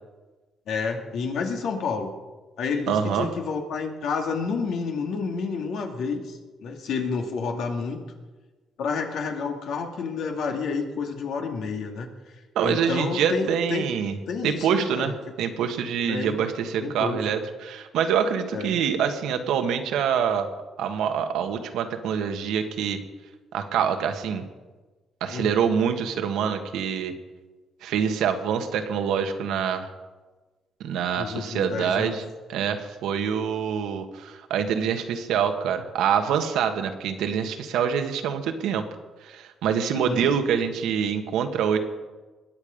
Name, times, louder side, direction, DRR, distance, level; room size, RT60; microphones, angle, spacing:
voice 1, 0.7-2.1 2.6-8.0 8.8-12.1 12.6-13.9 14.3-15.1 16.1-16.4 16.8-17.2 18.5-18.8 25.3-25.5 31.2-32.2 39.9-40.3, left 5 dB, 75° left, 3 dB, 2.2 m, -29 dB
voice 2, 2.9-3.3 12.5-14.2 14.4-20.5 20.8-23.0 23.5-24.5 25.2-27.1 27.8-29.9 30.8-32.2 32.5-38.8 39.2-41.8, right 7 dB, 85° right, 6 dB, 1.4 m, -25 dB
21.0 x 8.6 x 5.2 m, 1.3 s
cardioid pair, 90°, 0 cm